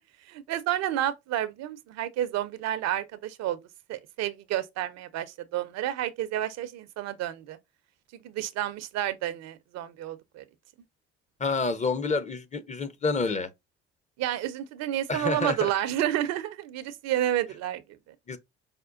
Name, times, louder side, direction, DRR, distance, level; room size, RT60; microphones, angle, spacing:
voice 1, 0.3-3.6 3.9-7.6 8.2-10.5 14.2-18.1, right 12 dB, 60° right, 0.5 m, -30 dB
voice 2, 11.4-13.5 15.1-15.7 18.3-18.4, left 3 dB, 25° left, 0.6 m, -28 dB
5.0 x 2.1 x 2.4 m
hypercardioid pair, 50°, 30 cm